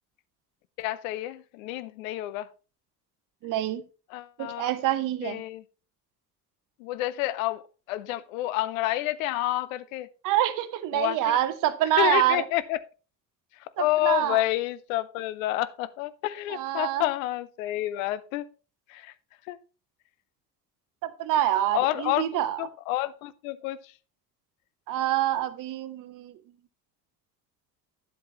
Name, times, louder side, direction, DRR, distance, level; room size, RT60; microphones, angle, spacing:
voice 1, 0.8-2.5 4.1-4.7 5.2-5.6 6.8-7.6 7.9-10.1 10.9-11.4 12.0-12.8 13.6-18.5 18.9-19.1 19.5-19.6 21.7-22.3 22.6-23.8, left 15 dB, 55° left, 0.7 m, -29 dB
voice 2, 3.4-3.8 4.4-5.4 10.2-12.4 13.8-14.4 16.5-17.0 21.0-22.6 24.9-26.3, right 12 dB, 40° right, 0.9 m, -26 dB
10.0 x 7.8 x 2.9 m
figure-of-eight pair, 60°, 49 cm